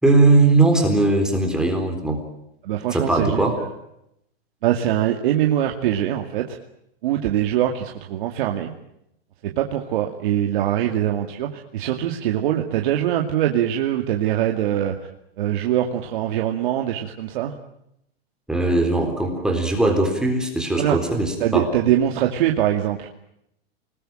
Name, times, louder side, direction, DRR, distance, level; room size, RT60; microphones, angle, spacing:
voice 1, 0.0-2.2 2.9-3.6 18.5-21.7, right 2 dB, ahead, 3 dB, 3.9 m, -19 dB
voice 2, 2.6-3.5 4.6-6.6 7.0-8.7 9.4-15.0 15.4-17.6 20.8-21.0 21.4-23.1, right 11 dB, 50° right, 3 dB, 2.5 m, -23 dB
28.5 x 20.5 x 9.0 m, 0.80 s
supercardioid pair, 165°, 31 cm